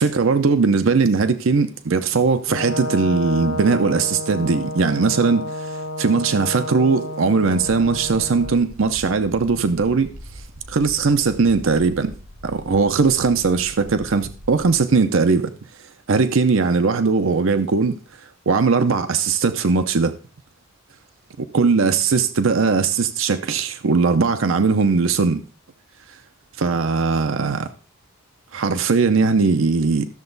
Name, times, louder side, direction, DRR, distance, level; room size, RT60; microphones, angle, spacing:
voice 1, 0.0-5.7 6.0-10.1 10.7-12.1 12.4-15.5 16.1-18.0 18.5-20.1 21.5-25.4 26.6-27.7 28.5-30.1, right 4 dB, 70° right, 0.6 m, -19 dB
Brass instrument, 2.5-8.6, left 1 dB, 70° left, 1.1 m, -30 dB
sound 1, 7.6-14.7, equal, 35° right, 3.7 m, -41 dB
13.0 x 6.8 x 3.9 m
head